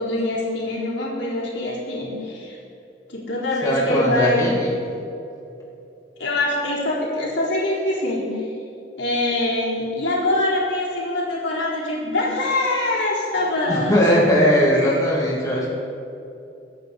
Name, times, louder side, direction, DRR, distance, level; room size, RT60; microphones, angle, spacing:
voice 1, 0.0-2.6 3.1-4.5 6.2-8.5 9.0-13.9 14.7-15.0, left 1 dB, 90° left, -5 dB, 3.9 m, -24 dB
voice 2, 3.6-4.8 13.7-15.7, equal, 20° left, -5 dB, 2.5 m, -19 dB
22.5 x 9.3 x 4.0 m, 2.7 s
head